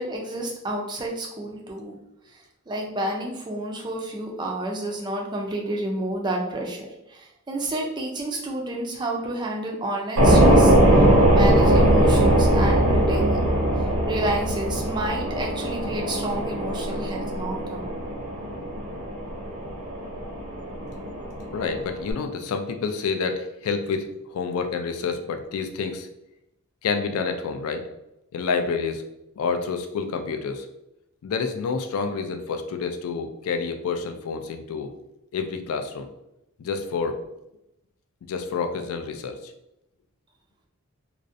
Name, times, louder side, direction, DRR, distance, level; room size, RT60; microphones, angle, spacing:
voice 1, 0.0-2.0 2.7-10.7 11.3-13.4 13.8-18.0, right 1 dB, 20° right, 0 dB, 0.3 m, -30 dB
sound 1, 10.2-22.1, right 1 dB, 75° right, 0.6 m, -20 dB
voice 2, 21.5-26.1 26.8-27.9 28.3-29.0 29.4-30.7 31.2-34.9 35.3-36.1 36.6-37.2 38.2-39.5, left 5 dB, 70° left, 5 dB, 0.3 m, -28 dB
2.4 x 2.0 x 2.5 m, 0.87 s
head